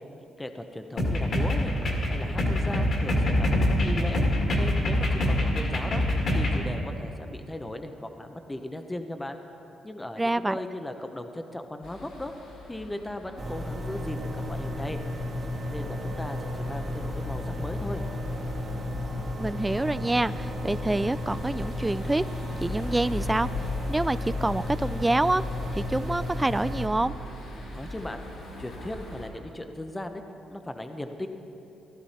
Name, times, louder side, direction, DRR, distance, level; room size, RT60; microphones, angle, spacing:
voice 1, 0.4-1.7 2.1-4.2 4.5-6.0 6.3-9.4 9.8-12.3 12.7-15.0 15.7-18.0 27.7-28.2 28.6-30.2 30.5-31.3, left 1 dB, 15° left, 6 dB, 0.8 m, -37 dB
sound 1, 1.0-6.6, left 1 dB, 55° left, 2.2 m, -25 dB
voice 2, 10.2-10.6 19.4-22.2 22.6-25.4 25.7-27.1, right 2 dB, 15° right, 16 dB, 0.3 m, -27 dB
sound 2, 11.8-29.3, left 2 dB, 75° left, 2.6 m, -40 dB
sound 3, 13.4-26.9, left 1 dB, 35° right, 1.8 m, -34 dB
15.0 x 12.5 x 4.3 m, 3.0 s
cardioid pair, 90°, 0 cm